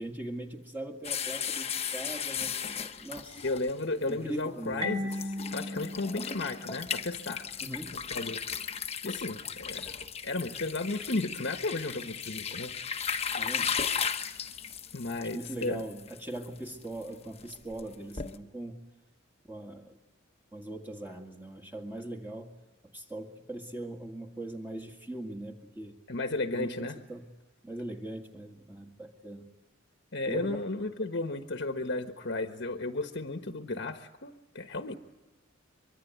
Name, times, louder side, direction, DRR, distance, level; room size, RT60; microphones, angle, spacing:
voice 1, 0.0-3.5 4.1-4.9 7.6-8.0 13.4-13.7 15.2-18.9 19.5-20.0 20.5-22.6 22.9-26.0 26.5-27.3 27.6-29.5 30.2-30.6, right 1 dB, 10° right, 2 dB, 2.0 m, -41 dB
sound 1, 1.0-4.1 4.7-4.8 5.1-18.4, left 7 dB, 30° left, 1.1 m, -36 dB
voice 2, 3.4-7.5 7.9-8.4 9.0-9.9 10.2-12.7 14.9-15.8 26.1-27.0 30.1-35.0, left 2 dB, 55° left, 6 dB, 1.3 m, -34 dB
Marimba xylophone, 4.8-7.5, left 1 dB, 25° right, 1.6 m, -37 dB
24.5 x 23.5 x 9.4 m, 1.1 s
head